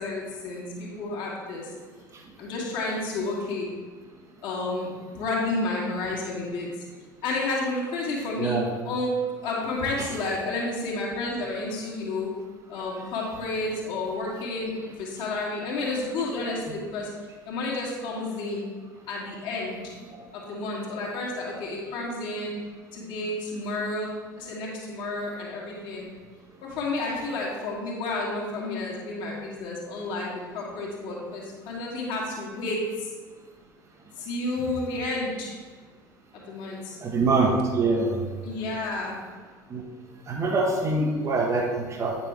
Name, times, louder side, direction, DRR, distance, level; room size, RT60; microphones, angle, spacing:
voice 1, 0.0-1.7 2.4-3.7 4.4-4.9 5.2-6.7 7.2-8.6 8.9-9.1 9.4-12.3 12.7-17.1 17.5-18.6 19.1-19.9 20.3-22.5 22.9-24.1 24.4-26.1 26.6-33.1 34.2-35.5 36.3-37.0 38.4-39.2, left 2 dB, 50° left, -4 dB, 1.7 m, -31 dB
voice 2, 37.0-38.1 39.7-39.8 40.3-42.2, right 3 dB, 30° right, 1 dB, 1.0 m, -24 dB
8.8 x 5.3 x 3.4 m, 1.5 s
figure-of-eight pair, 70°, 11 cm